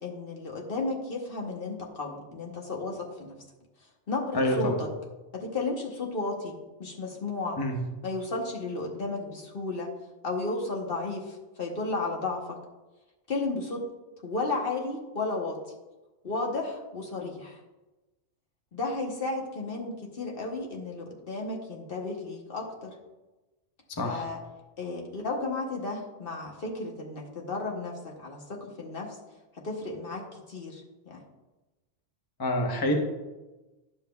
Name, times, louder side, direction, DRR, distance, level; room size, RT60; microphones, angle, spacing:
voice 1, 0.0-3.4 4.1-4.9 5.3-7.6 8.0-9.9 10.2-12.6 13.3-13.8 14.2-15.6 16.2-17.6 18.7-23.0 24.0-24.4 24.8-29.2 29.5-31.2, left 3 dB, 50° left, -1 dB, 1.1 m, -33 dB
voice 2, 4.3-4.8 7.6-7.8 23.9-24.2 32.4-32.9, left 1 dB, 25° left, 2 dB, 0.7 m, -27 dB
10.5 x 7.2 x 2.3 m, 1.1 s
omnidirectional pair, 1.3 m